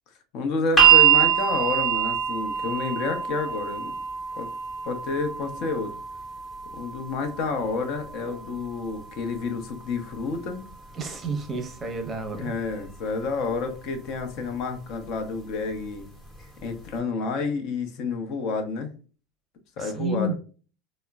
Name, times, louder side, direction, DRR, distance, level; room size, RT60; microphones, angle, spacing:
voice 1, 0.3-3.9 4.4-4.5 4.8-5.9 6.7-10.6 12.3-16.1 16.6-18.9 19.8-20.3, left 4 dB, 55° left, 6 dB, 0.7 m, -29 dB
sound 1, 0.8-12.9 13.9-14.0, right 9 dB, 20° left, 0.8 m, -26 dB
voice 2, 11.0-12.5 19.8-20.3, right 2 dB, 20° right, 6 dB, 0.6 m, -30 dB
3.6 x 2.0 x 2.2 m, 0.37 s
supercardioid pair, 135°, 0 cm